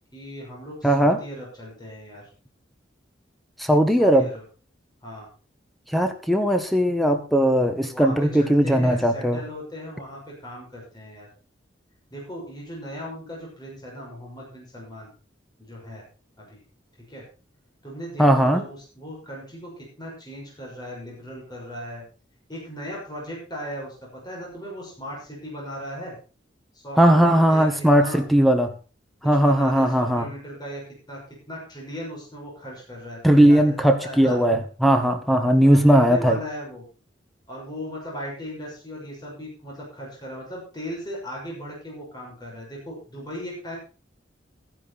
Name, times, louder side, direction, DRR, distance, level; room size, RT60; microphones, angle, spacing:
voice 1, 0.1-2.3 4.0-4.4 5.0-5.3 7.9-11.3 12.1-15.1 15.6-16.1 16.4-16.6 17.1-17.2 17.8-22.0 22.5-26.2 26.7-27.7 28.0-28.2 29.3-30.8 31.1-31.2 31.5-34.4 35.6-36.8 37.5-43.8, equal, 20° left, -3 dB, 6.2 m, -37 dB
voice 2, 0.8-1.2 3.6-4.3 5.9-9.4 18.2-18.6 27.0-28.7 29.2-30.3 33.2-36.4, equal, ahead, 7 dB, 1.5 m, -18 dB
13.5 x 10.5 x 4.2 m, 0.35 s
head